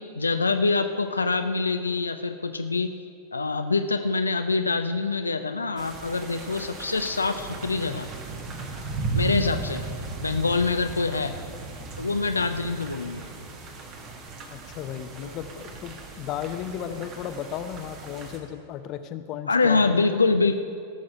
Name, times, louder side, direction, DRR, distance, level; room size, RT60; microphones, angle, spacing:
voice 1, 0.2-2.9 3.3-8.1 9.1-9.8 10.2-11.3 12.0-13.2 15.2-15.3 17.0-17.1 19.5-20.6, left 3 dB, 80° left, 7 dB, 0.5 m, -25 dB
sound 1, 5.8-18.4, right 3 dB, 35° right, 1.5 m, -36 dB
voice 2, 14.5-20.0, left 9 dB, 40° left, 9 dB, 0.7 m, -35 dB
17.5 x 6.4 x 5.7 m, 2.3 s
figure-of-eight pair, 90°, 0 cm